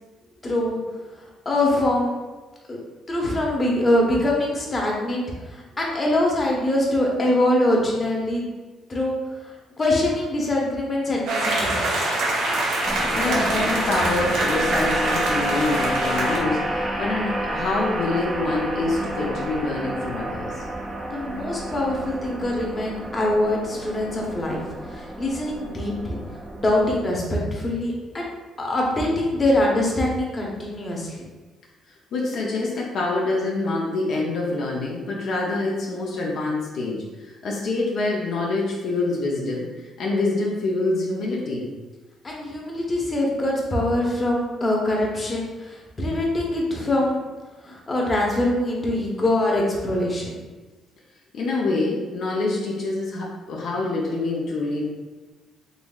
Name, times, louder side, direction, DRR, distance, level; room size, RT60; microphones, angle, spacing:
voice 1, 0.4-0.8 1.2-2.1 2.7-2.8 3.1-8.5 8.9-12.1 21.1-26.2 26.5-28.3 28.6-31.3 42.2-47.2 47.6-50.4, left 1 dB, 30° left, -2 dB, 0.9 m, -24 dB
sound 1, 11.3-16.4, right 2 dB, 90° right, 0.8 m, -24 dB
sound 2, 12.8-27.0, right 1 dB, 20° right, 0.5 m, -30 dB
voice 2, 13.1-20.6 31.9-41.7 51.3-54.8, left 2 dB, 70° left, -3 dB, 0.5 m, -26 dB
3.9 x 3.0 x 2.3 m, 1.2 s
cardioid pair, 90°, 0 cm